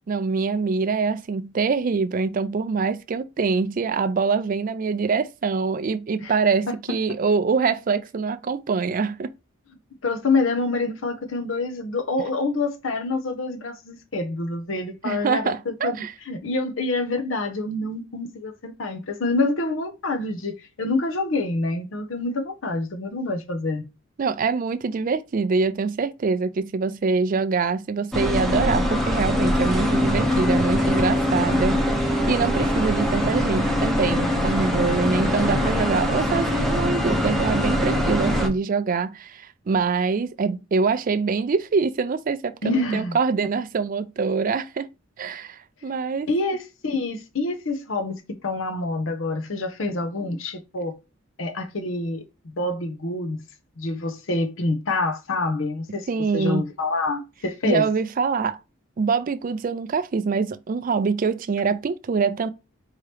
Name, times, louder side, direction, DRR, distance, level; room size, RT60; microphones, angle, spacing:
voice 1, 0.1-9.3 15.0-16.1 24.2-44.9 45.2-46.3 56.1-56.6 57.6-58.6 59.0-62.5, right 5 dB, 40° right, 0.4 m, -24 dB
voice 2, 10.0-16.0 16.3-23.8 42.6-43.2 46.3-50.9 51.4-53.4 53.8-56.1 56.3-57.8, left 2 dB, 70° left, 0.7 m, -27 dB
sound 1, 28.1-38.5, left 1 dB, ahead, 0.7 m, -22 dB
4.6 x 2.8 x 3.3 m
head